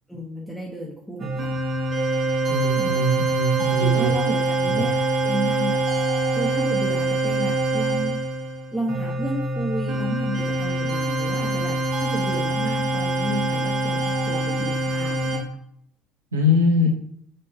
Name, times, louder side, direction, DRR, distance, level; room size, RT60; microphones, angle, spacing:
voice 1, 0.1-1.6 2.8-3.1 3.8-5.8 6.4-8.2 8.7-15.6, right 1 dB, ahead, -4 dB, 0.9 m, -31 dB
sound 1, 1.2-15.4, right 2 dB, 45° right, 1.0 m, -24 dB
voice 2, 2.5-4.1 4.7-4.8 16.3-16.9, left 1 dB, 80° right, 0 dB, 0.9 m, -22 dB
6.3 x 2.8 x 2.7 m, 0.68 s
figure-of-eight pair, 60°, 0 cm